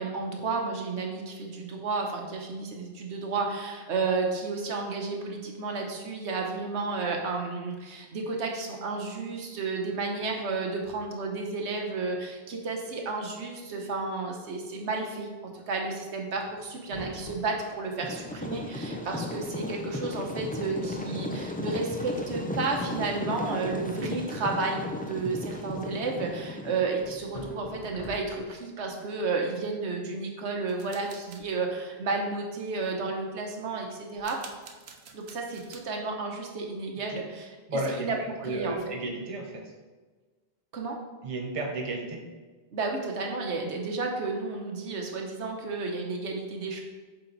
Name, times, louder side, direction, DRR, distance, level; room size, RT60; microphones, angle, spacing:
voice 1, 0.0-34.4 35.1-38.8 40.7-41.0 42.7-46.8, right 3 dB, 90° right, 1 dB, 1.3 m, -32 dB
sound 1, 16.8-18.0 18.9-19.0 19.2-19.6 19.9-20.1 20.6-20.7 21.1-21.4 22.5-23.1 25.1-26.0 27.0-28.6, left 2 dB, 40° left, 0.9 m, -45 dB
sound 2, 18.0-27.1, left 2 dB, 10° left, 0.4 m, -35 dB
sound 3, 30.7-31.4 34.2-35.8, right 5 dB, 70° right, 0.9 m, -49 dB
voice 2, 37.7-39.7 41.2-42.2, right 2 dB, 35° right, 0 dB, 0.9 m, -33 dB
7.7 x 4.1 x 4.0 m, 1.3 s
omnidirectional pair, 1.1 m